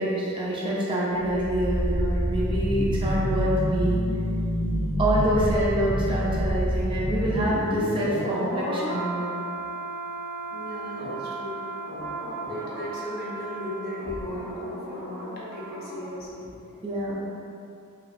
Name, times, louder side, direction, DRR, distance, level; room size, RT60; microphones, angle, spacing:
voice 1, 0.0-4.0 5.0-9.2 16.8-17.2, right 1 dB, 25° right, -5 dB, 0.3 m, -26 dB
sound 1, 1.1-16.1 16.4-16.6, equal, 10° left, 1.3 m, -29 dB
voice 2, 10.5-11.6 12.5-16.5, equal, 45° left, -6 dB, 0.6 m, -36 dB
2.9 x 2.4 x 2.3 m, 2.6 s
head